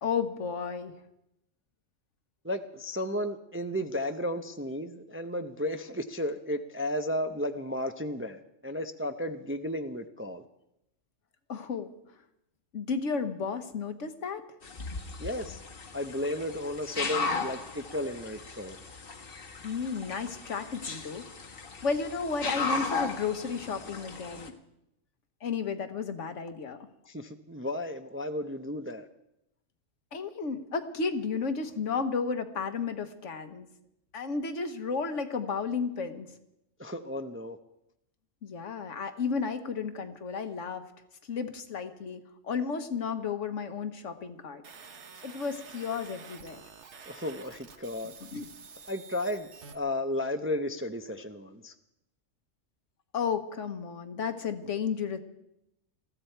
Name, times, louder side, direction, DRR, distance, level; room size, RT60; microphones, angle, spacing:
voice 1, 0.0-0.9 11.5-11.9 12.7-14.4 19.6-21.3 21.8-24.5 25.4-26.8 30.1-33.7 34.1-36.3 38.4-40.8 41.3-44.6 45.2-46.6 48.3-48.5 53.1-55.2, left 5 dB, 75° left, 8 dB, 1.5 m, -33 dB
voice 2, 2.4-10.4 15.2-15.6 15.9-18.8 27.1-29.1 36.8-37.6 47.1-48.1 48.9-51.7, left 1 dB, 15° right, 7 dB, 0.5 m, -34 dB
sound 1, 14.6-24.5, left 4 dB, 50° left, 1.3 m, -36 dB
sound 2, 44.6-49.8, right 5 dB, 65° right, 1.3 m, -49 dB
20.5 x 15.0 x 4.5 m, 0.85 s
omnidirectional pair, 1.3 m